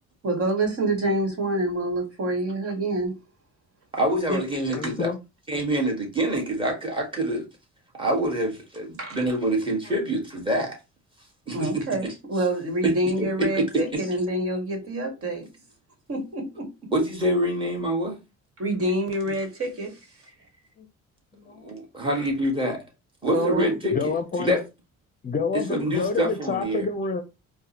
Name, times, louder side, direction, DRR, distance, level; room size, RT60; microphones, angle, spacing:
voice 1, 0.2-3.2 4.3-4.4 9.0-9.2 11.5-15.5 16.1-16.7 18.6-20.0 22.1-22.2 23.3-23.7, right 1 dB, 50° right, 1.5 m, -27 dB
voice 2, 3.9-5.1 5.5-7.5 7.9-10.8 11.5-12.1 12.8-12.9 13.2-14.0 16.9-18.2 21.6-22.8 23.2-24.0 24.4-24.6 25.5-26.8, right 1 dB, 15° right, 1.6 m, -26 dB
voice 3, 4.7-5.2 20.8-20.9 21.4-21.7 23.9-24.6 25.2-27.2, left 4 dB, 30° left, 0.6 m, -28 dB
4.6 x 2.2 x 2.9 m
cardioid pair, 100°, 29 cm